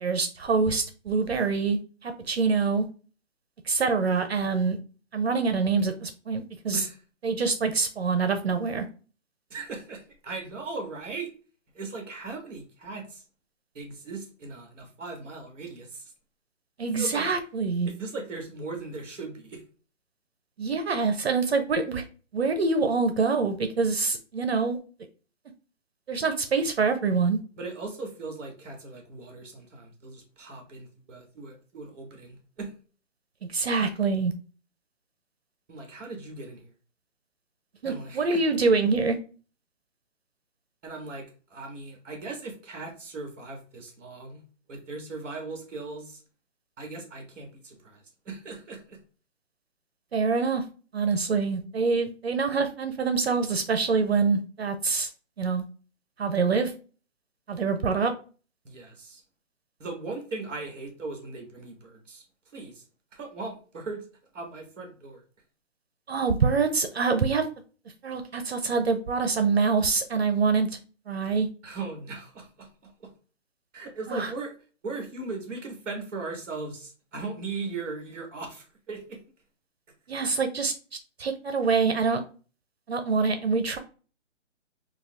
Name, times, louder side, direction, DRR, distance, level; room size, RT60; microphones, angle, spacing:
voice 1, 0.0-2.9 3.7-4.8 5.1-6.8 7.2-8.9 16.8-17.9 20.6-22.0 22.3-24.8 26.1-27.4 33.5-34.3 37.8-39.2 50.1-50.6 50.9-55.1 55.4-55.6 56.2-56.7 57.5-58.1 66.1-67.5 68.0-70.7 71.1-71.5 74.1-74.3 80.1-80.7 81.2-82.2 82.9-83.8, right 4 dB, 55° right, 7 dB, 0.5 m, -25 dB
voice 2, 9.5-11.3 11.7-13.2 13.7-16.1 16.9-17.3 17.8-19.6 27.6-32.7 35.7-36.7 37.8-38.4 40.8-44.4 44.7-46.2 46.8-49.0 58.6-59.2 59.8-62.2 62.5-62.8 63.1-64.0 64.3-65.2 71.6-73.1 73.7-74.5 74.8-79.2, right 3 dB, 10° right, 2 dB, 0.8 m, -38 dB
5.5 x 2.3 x 2.4 m, 0.37 s
hypercardioid pair, 165°, 38 cm